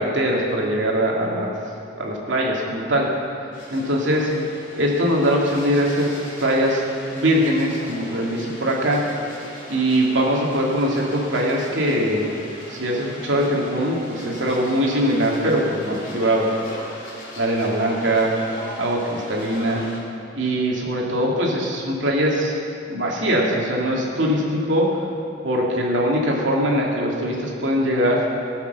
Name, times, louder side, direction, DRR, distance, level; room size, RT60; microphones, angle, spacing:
voice 1, 0.0-1.5 2.0-3.1 3.7-4.3 4.7-6.8 7.1-9.0 9.7-12.2 12.7-16.5 17.4-18.3 18.8-19.8 20.3-22.5 22.9-24.9 25.4-28.3, equal, 75° right, -2 dB, 2.5 m, -21 dB
sound 1, 3.5-20.0, left 1 dB, 45° left, 3.2 m, -39 dB
17.0 x 7.3 x 6.9 m, 2.6 s
head